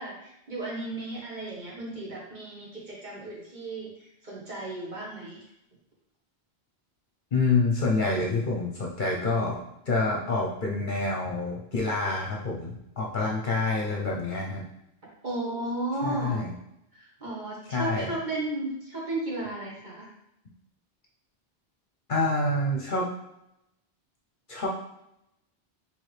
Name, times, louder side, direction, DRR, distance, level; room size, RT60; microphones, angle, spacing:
voice 1, 0.0-5.4 15.2-16.4 16.9-20.1, right 2 dB, 45° right, -4 dB, 1.5 m, -34 dB
voice 2, 7.3-9.6 9.9-14.6 16.0-16.5 17.7-18.1 22.1-23.1 24.5-24.7, left 3 dB, 50° left, -2 dB, 0.9 m, -27 dB
4.6 x 3.5 x 3.2 m, 0.81 s
omnidirectional pair, 1.1 m